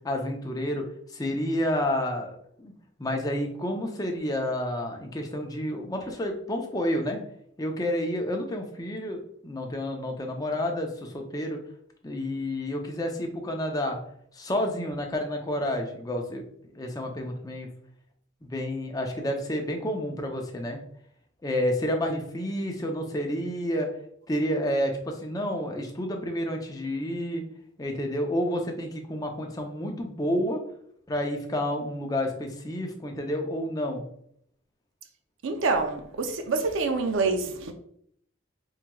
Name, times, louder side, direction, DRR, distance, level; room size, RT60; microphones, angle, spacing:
voice 1, 0.0-0.9 1.1-2.7 3.0-7.2 7.6-11.6 12.0-14.0 14.3-16.4 16.8-17.7 18.4-20.8 21.4-23.9 24.3-27.4 27.8-30.6 31.1-34.0, left 1 dB, 20° left, 0.5 m, -30 dB
voice 2, 35.4-37.7, right 3 dB, 80° right, 0.5 m, -26 dB
4.6 x 3.0 x 2.2 m
head